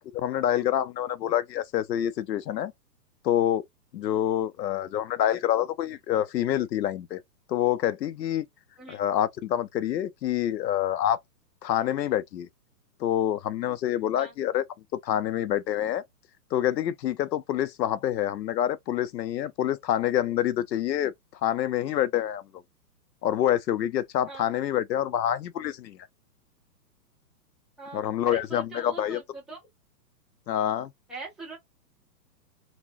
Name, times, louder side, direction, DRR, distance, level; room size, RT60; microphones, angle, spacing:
voice 1, 0.1-2.7 3.2-3.6 3.9-7.2 7.5-8.4 8.9-11.2 11.6-12.5 13.0-14.6 15.0-16.0 16.5-21.1 21.4-22.4 23.2-26.0 27.9-29.2 30.5-30.9, left 11 dB, 85° left, 0.7 m, -27 dB
voice 2, 27.8-29.6 31.1-31.6, right 3 dB, ahead, 0.3 m, -41 dB
4.1 x 2.2 x 2.6 m
hypercardioid pair, 175°, 49 cm